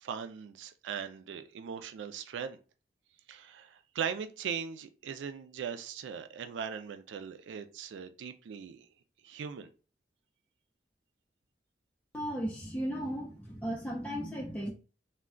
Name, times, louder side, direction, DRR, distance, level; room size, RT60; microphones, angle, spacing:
voice 1, 0.0-2.6 3.3-8.9 9.2-9.7, right 7 dB, 85° right, 0.3 m, -39 dB
voice 2, 12.1-14.7, equal, 5° left, 0.4 m, -35 dB
2.2 x 2.2 x 3.6 m
head